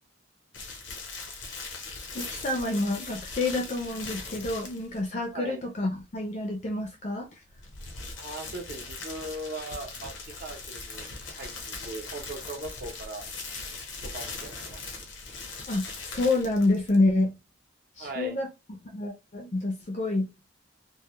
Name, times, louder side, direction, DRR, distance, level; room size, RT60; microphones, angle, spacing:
sound 1, 0.5-5.0 7.5-17.1, left 3 dB, 90° left, 0.8 m, -40 dB
voice 1, 2.1-7.3 15.7-17.4 18.0-20.3, left 2 dB, 40° left, 0.4 m, -28 dB
voice 2, 5.3-5.6 8.2-10.1 10.4-11.1 11.4-13.3 14.0-15.1 18.0-18.4, right 2 dB, 50° right, 0.6 m, -39 dB
2.2 x 2.0 x 2.9 m
head